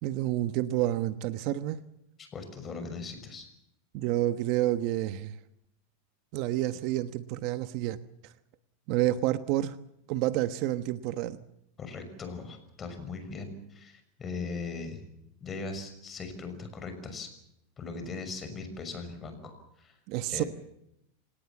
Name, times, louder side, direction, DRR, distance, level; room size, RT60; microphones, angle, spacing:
voice 1, 0.0-1.8 3.9-5.4 6.3-8.3 8.9-9.8 10.1-11.4 20.1-20.4, right 14 dB, 50° right, 1.2 m, -29 dB
voice 2, 2.2-3.5 11.8-15.0 15.4-17.3 17.8-19.9 20.3-20.5, left 4 dB, 20° left, 6.1 m, -39 dB
27.5 x 18.5 x 7.3 m
supercardioid pair, 140°, 0 cm